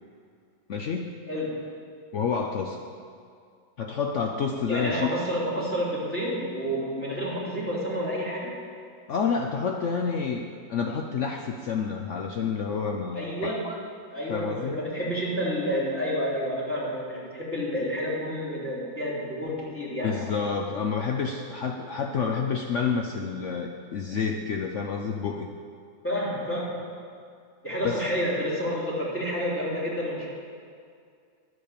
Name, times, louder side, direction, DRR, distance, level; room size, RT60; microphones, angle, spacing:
voice 1, 0.7-1.1 2.1-2.8 3.8-5.1 9.1-13.8 14.3-14.8 20.0-25.5 27.8-28.1, left 5 dB, 85° left, 3 dB, 0.6 m, -29 dB
voice 2, 1.3-1.7 4.7-8.6 13.1-13.7 14.1-20.2 26.0-26.9 27.6-30.3, equal, 5° left, -7 dB, 3.2 m, -29 dB
11.5 x 8.3 x 6.8 m, 2.3 s
omnidirectional pair, 2.1 m